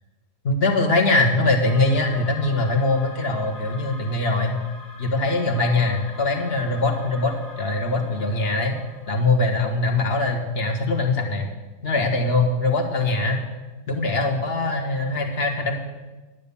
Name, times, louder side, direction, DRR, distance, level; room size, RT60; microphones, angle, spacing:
voice 1, 0.4-4.6 5.0-8.7 9.1-11.5 11.8-13.4 13.9-15.7, left 2 dB, 35° left, 3 dB, 1.6 m, -22 dB
sound 1, 1.6-9.4, left 2 dB, 80° left, 2.0 m, -43 dB
10.5 x 9.7 x 7.0 m, 1.2 s
omnidirectional pair, 2.0 m